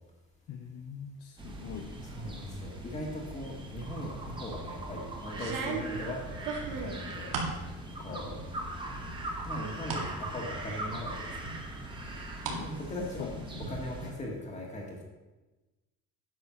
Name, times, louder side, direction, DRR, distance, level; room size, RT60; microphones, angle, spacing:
voice 1, 0.5-1.9 8.1-8.2 12.5-12.8 13.2-13.6 14.0-14.1, left 7 dB, 40° left, 3 dB, 0.8 m, -42 dB
sound 1, 1.4-14.1, right 1 dB, 15° right, 1.3 m, -41 dB
voice 2, 2.0-7.4 8.0-8.4 9.5-11.6 12.6-13.3 13.6-15.0, left 1 dB, 20° left, -1 dB, 1.4 m, -40 dB
sound 2, 4.3-4.7 5.3-7.6 8.0-8.6 9.0-10.1 10.5-10.6 11.5-12.6 12.9-13.7, right 4 dB, 75° right, 2.3 m, -37 dB
9.4 x 6.8 x 5.8 m, 1.1 s
cardioid pair, 170°, 34 cm